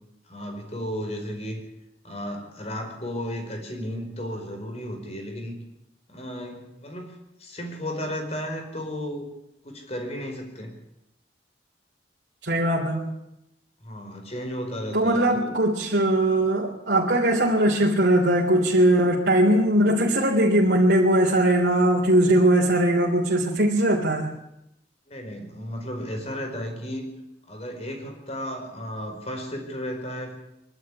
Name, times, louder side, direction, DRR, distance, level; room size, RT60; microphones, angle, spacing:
voice 1, 0.2-1.6 2.0-5.5 6.1-9.3 9.6-10.7 13.8-15.5 25.1-27.1 27.5-30.4, equal, 35° left, 4 dB, 5.0 m, -34 dB
voice 2, 12.4-13.0 14.9-24.3, right 1 dB, 65° right, -3 dB, 3.6 m, -20 dB
24.0 x 12.5 x 9.9 m, 0.85 s
head